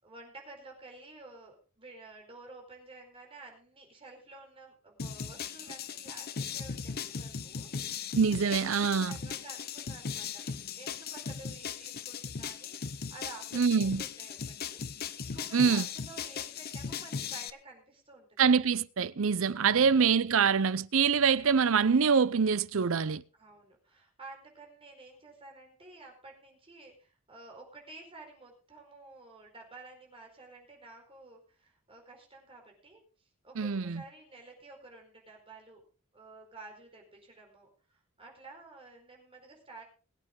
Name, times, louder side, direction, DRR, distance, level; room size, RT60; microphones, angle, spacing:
voice 1, 0.0-10.5 10.7-18.3 21.3-21.7 23.3-35.8 36.1-39.8, right 3 dB, 25° right, 4.6 m, -52 dB
sound 1, 5.0-17.5, left 6 dB, 45° left, 0.7 m, -38 dB
voice 2, 8.1-9.2 13.5-14.0 15.5-15.8 18.4-23.2 33.6-34.0, right 6 dB, 65° right, 0.6 m, -25 dB
21.5 x 8.9 x 3.7 m
head